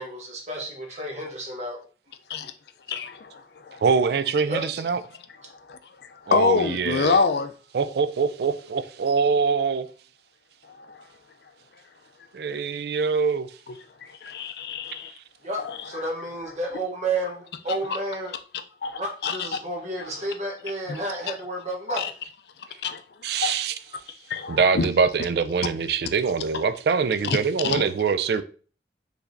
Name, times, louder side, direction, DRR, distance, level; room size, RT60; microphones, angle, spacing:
voice 1, 0.0-1.8 4.5-4.6 15.4-18.3 18.9-22.1, right 1 dB, 40° right, 1.1 m, -31 dB
voice 2, 2.9-3.8 5.7-5.8 6.3-7.5 10.9-11.0 14.2-15.1 15.6-15.8 18.8-19.6 20.0-20.1 20.9-21.0 21.9-22.1 22.8-23.0 23.4-23.5 24.3-24.9 27.6-27.8, left 5 dB, 70° left, 0.4 m, -26 dB
voice 3, 3.8-5.0 6.3-7.2 7.7-9.9 12.3-13.5 23.2-23.8 24.3-28.4, right 5 dB, 65° right, 0.3 m, -24 dB
4.7 x 3.3 x 2.6 m
head